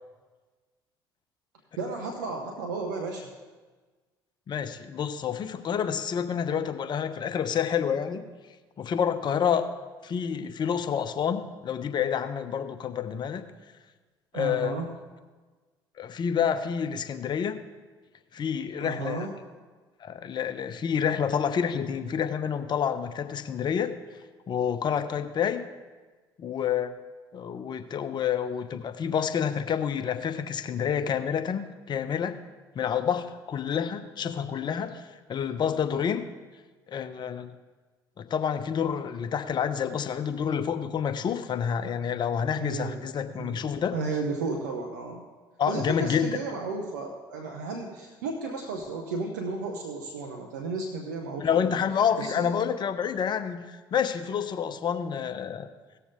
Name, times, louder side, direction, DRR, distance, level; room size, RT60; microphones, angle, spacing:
voice 1, 1.8-3.3 14.3-14.9 18.8-19.3 42.5-43.0 43.3-43.6 43.9-45.2 45.7-51.8 52.2-52.5, right 3 dB, 85° right, 3 dB, 1.0 m, -33 dB
voice 2, 4.5-8.2 8.8-9.7 10.0-13.4 14.3-14.7 16.0-17.6 18.3-19.3 20.0-23.9 24.5-25.6 26.4-26.9 27.3-32.4 32.7-35.0 35.3-36.3 36.9-37.5 38.2-43.9 45.6-46.3 51.4-55.7, left 8 dB, 45° left, 9 dB, 1.0 m, -28 dB
17.5 x 7.0 x 3.7 m, 1.3 s
hypercardioid pair, 65°, 10 cm